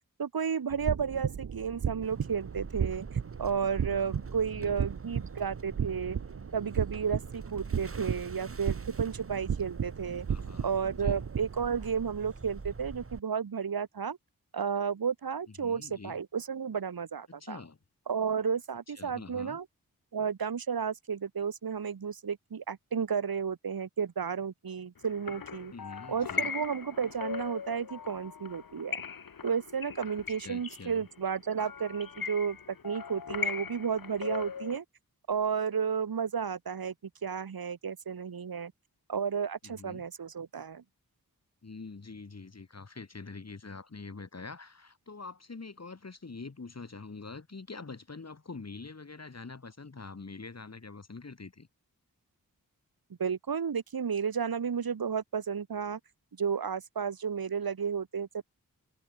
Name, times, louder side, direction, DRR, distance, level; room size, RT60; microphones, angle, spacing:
voice 1, 0.2-6.2 6.5-10.3 10.6-14.2 14.5-17.6 18.1-19.6 20.1-25.7 26.1-29.0 29.4-32.6 32.8-34.8 35.3-36.9 37.2-38.7 39.1-40.8 53.2-56.0 56.4-58.4, right 6 dB, 80° right, 1.8 m, -32 dB
sound 1, 0.7-11.5, right 7 dB, 55° right, 0.8 m, -35 dB
sound 2, 2.0-13.2, right 4 dB, 40° right, 2.1 m, -45 dB
voice 2, 3.8-4.2 4.6-4.8 10.3-10.7 11.0-11.2 15.5-16.2 17.3-17.8 18.9-19.6 25.7-26.5 30.4-31.0 39.6-40.0 41.6-51.7, left 4 dB, 45° left, 3.3 m, -45 dB
sound 3, 25.0-34.8, left 6 dB, 70° left, 1.5 m, -39 dB
wide cardioid pair, 105°, 36 cm